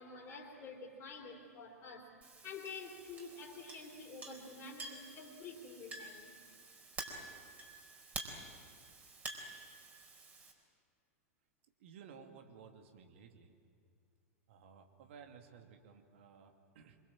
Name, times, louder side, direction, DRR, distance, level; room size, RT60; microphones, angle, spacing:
voice 1, 0.0-6.4, left 4 dB, 30° left, -1 dB, 3.7 m, -49 dB
Chink clink, 2.2-10.5, right 2 dB, 20° right, 4.3 m, -49 dB
voice 2, 11.8-13.5 14.5-17.0, right 6 dB, 55° right, 5 dB, 2.4 m, -56 dB
25.5 x 23.5 x 7.6 m, 2.3 s
figure-of-eight pair, 95°, 8 cm